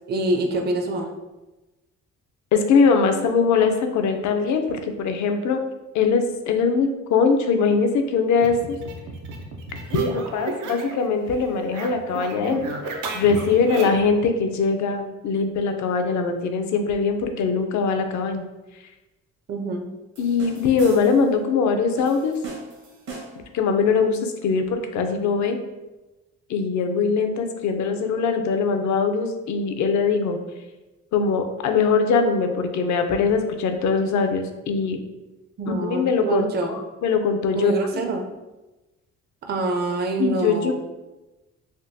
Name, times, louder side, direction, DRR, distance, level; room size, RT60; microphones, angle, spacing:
voice 1, 0.1-1.1 19.5-19.9 35.6-36.8 37.5-38.3 39.4-40.7, right 2 dB, 35° right, 4 dB, 0.4 m, -25 dB
voice 2, 2.5-5.6 5.9-8.8 9.9-12.6 13.1-18.4 20.2-22.4 23.5-25.6 26.5-30.4 31.1-35.0 35.8-38.0 40.2-40.7, left 5 dB, 70° left, 6 dB, 0.5 m, -22 dB
sound 1, 8.4-11.1 11.3-14.1, right 3 dB, 90° right, 0.6 m, -32 dB
sound 2, 20.2-21.3 22.0-23.5, right 3 dB, 70° right, 1.2 m, -40 dB
3.5 x 2.3 x 2.6 m, 1.1 s
cardioid pair, 90°, 30 cm